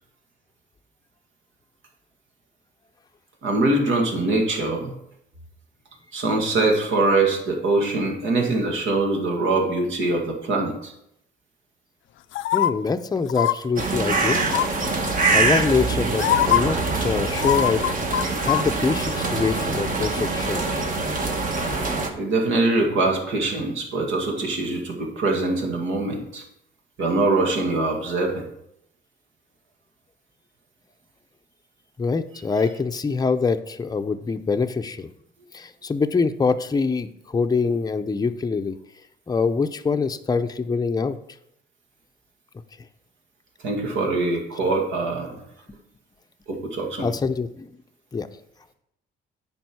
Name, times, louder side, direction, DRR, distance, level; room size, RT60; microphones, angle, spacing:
voice 1, 3.4-4.9 6.1-10.9 22.1-26.4 27.0-28.4 43.6-45.4 46.5-47.1, right 2 dB, 75° right, 1 dB, 2.2 m, -23 dB
sound 1, 12.3-12.7 13.3-13.5 14.5-14.9 15.7-15.8 16.2-16.6 17.4-18.6 18.9-19.0, left 12 dB, 75° left, 0.4 m, -22 dB
voice 2, 12.5-14.5 15.3-17.8 18.4-20.6 32.0-35.1 35.5-38.8 39.3-41.2 47.0-47.7 48.1-48.3, left 4 dB, 20° left, 7 dB, 0.6 m, -24 dB
sound 2, 13.8-22.1, right 3 dB, 40° right, 1.3 m, -24 dB
9.2 x 5.4 x 4.7 m, 0.76 s
cardioid pair, 90°, 20 cm